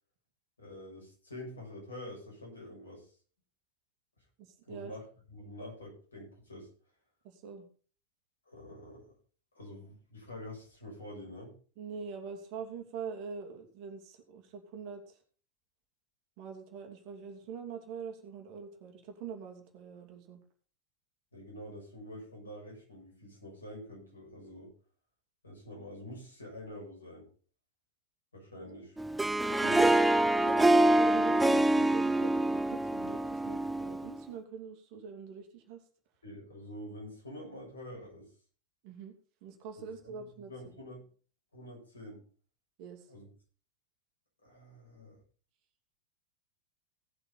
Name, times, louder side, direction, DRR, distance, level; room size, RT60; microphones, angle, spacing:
voice 1, 0.6-3.1 4.7-5.0 5.3-6.7 8.5-9.0 9.5-11.5 21.3-24.7 25.4-27.3 28.3-29.0 29.6-30.1 36.2-38.3 39.8-41.0 41.5-42.2 43.1-43.3 44.4-45.2, left 1 dB, 75° left, -1 dB, 7.5 m, -46 dB
voice 2, 4.4-4.9 7.2-7.7 11.8-15.2 16.4-20.4 28.6-28.7 29.4-29.9 30.3-35.8 38.8-39.2 39.4-40.5 42.8-43.1, right 6 dB, 45° right, 3 dB, 2.7 m, -44 dB
Harp, 29.0-34.2, right 1 dB, 5° right, 0.5 m, -26 dB
17.5 x 8.1 x 4.2 m, 0.41 s
figure-of-eight pair, 90°, 0 cm